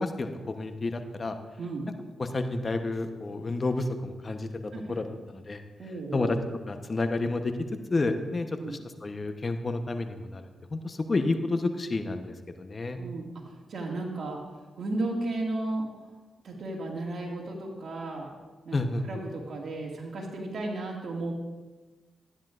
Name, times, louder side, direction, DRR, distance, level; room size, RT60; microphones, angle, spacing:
voice 1, 0.0-1.4 2.2-4.5 4.9-5.6 6.1-6.4 6.7-7.5 7.9-13.0 18.7-19.1, left 2 dB, 40° left, 7 dB, 0.9 m, -30 dB
voice 2, 1.6-1.9 4.7-4.8 5.8-6.4 8.6-8.8 13.0-14.4 14.8-15.9 16.4-18.3 18.6-21.3, right 2 dB, 65° right, 0 dB, 2.0 m, -34 dB
13.0 x 10.0 x 2.5 m, 1.2 s
supercardioid pair, 50°, 0 cm